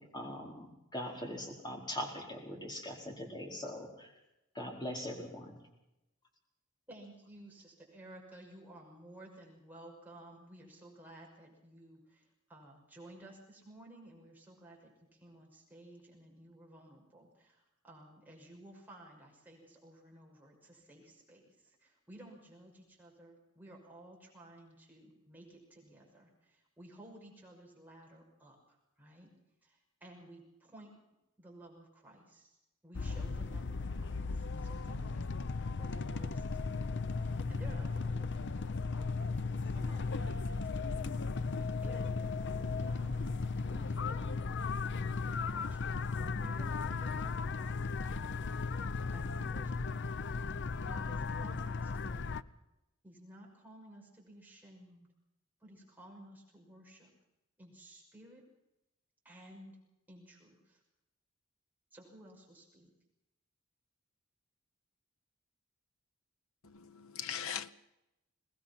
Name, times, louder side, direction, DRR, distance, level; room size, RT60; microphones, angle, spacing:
voice 1, 0.0-4.1 4.5-5.6, left 1 dB, 20° left, 4.7 m, -41 dB
voice 2, 6.9-29.3 29.6-30.9 31.4-32.6 32.8-35.4 35.7-41.2 41.6-43.3 43.7-44.6 44.9-46.0 46.3-47.9 49.1-50.2 50.8-52.5 53.0-55.1 55.6-57.1 57.6-58.4 59.2-59.8 60.1-60.8 61.9-62.9, right 1 dB, 10° right, 6.0 m, -55 dB
sound 1, 32.9-52.4, left 4 dB, 55° left, 0.7 m, -36 dB
voice 3, 66.6-67.7, left 9 dB, 70° left, 1.1 m, -40 dB
23.0 x 19.5 x 5.9 m
head